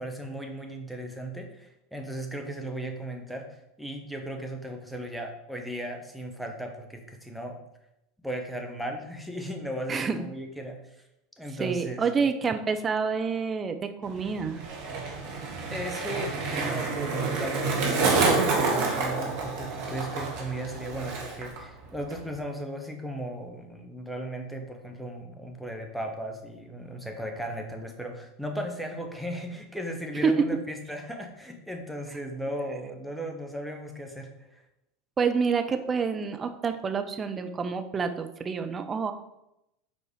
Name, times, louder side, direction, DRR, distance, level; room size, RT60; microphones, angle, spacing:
voice 1, 0.0-7.6 8.2-10.8 11.4-12.1 15.7-34.6, right 1 dB, ahead, 3 dB, 1.4 m, -36 dB
voice 2, 9.9-10.2 11.6-14.6 30.2-30.5 35.2-39.1, right 5 dB, 25° right, 7 dB, 0.8 m, -27 dB
Skateboard, 14.0-21.6 21.8-22.4, right 4 dB, 60° right, 1.8 m, -28 dB
7.3 x 4.7 x 4.8 m, 0.86 s
figure-of-eight pair, 80°, 0 cm